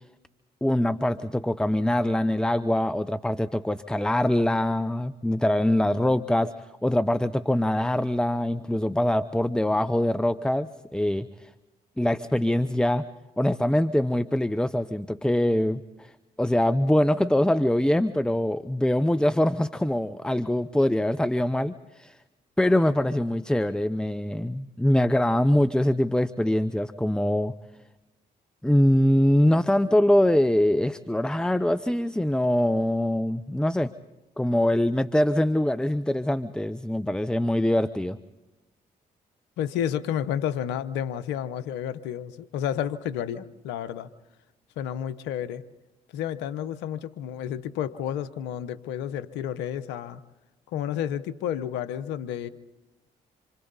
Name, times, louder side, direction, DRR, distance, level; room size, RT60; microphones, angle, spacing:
voice 1, 0.6-11.5 12.0-13.1 13.4-16.1 16.4-22.2 22.6-27.5 28.6-33.9 34.4-38.2, left 1 dB, 5° left, 14 dB, 0.8 m, -23 dB
voice 2, 39.6-44.1 44.8-45.6 46.1-50.2 50.7-52.5, left 9 dB, 90° left, 14 dB, 0.9 m, -31 dB
27.5 x 26.5 x 4.1 m, 1.0 s
supercardioid pair, 50°, 18 cm